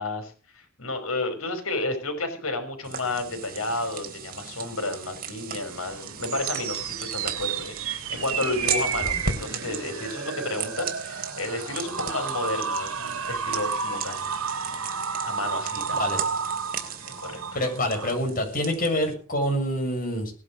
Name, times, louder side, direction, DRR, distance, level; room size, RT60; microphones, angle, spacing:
voice 1, 0.0-14.4 15.2-16.1 17.2-17.4, left 2 dB, 80° left, 8 dB, 6.0 m, -32 dB
sound 1, 2.8-19.1, right 6 dB, 45° right, 3.4 m, -37 dB
sound 2, 5.8-18.2, right 6 dB, 90° right, 2.2 m, -32 dB
voice 2, 15.9-16.2 17.5-20.3, left 1 dB, 40° left, 4 dB, 7.0 m, -26 dB
19.5 x 11.5 x 6.4 m, 0.40 s
head